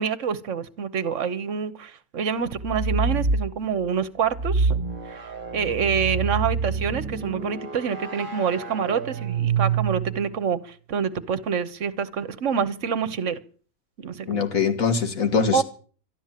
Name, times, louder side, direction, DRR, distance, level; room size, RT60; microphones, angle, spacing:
voice 1, 0.0-4.8 5.1-5.2 5.5-13.4 14.0-14.4 15.5-15.6, right 6 dB, 60° right, 1.3 m, -27 dB
sound 1, 2.5-3.5 4.3-10.3, right 5 dB, 35° right, 1.7 m, -27 dB
voice 2, 14.3-15.6, left 5 dB, 70° left, 2.3 m, -22 dB
13.0 x 12.0 x 7.5 m
omnidirectional pair, 1.5 m